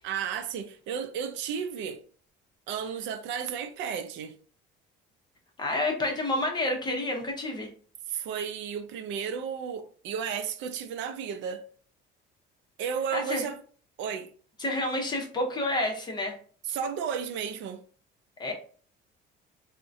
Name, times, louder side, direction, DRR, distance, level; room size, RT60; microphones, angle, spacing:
voice 1, 0.0-2.0 2.7-4.3 8.1-11.6 12.8-13.6 14.0-14.3 16.7-17.8, right 7 dB, 70° right, 0.5 m, -33 dB
voice 2, 5.6-7.7 13.1-13.5 14.6-16.4 18.4-18.5, left 1 dB, 20° left, 0.7 m, -29 dB
3.6 x 2.1 x 2.6 m
cardioid pair, 155°, 20 cm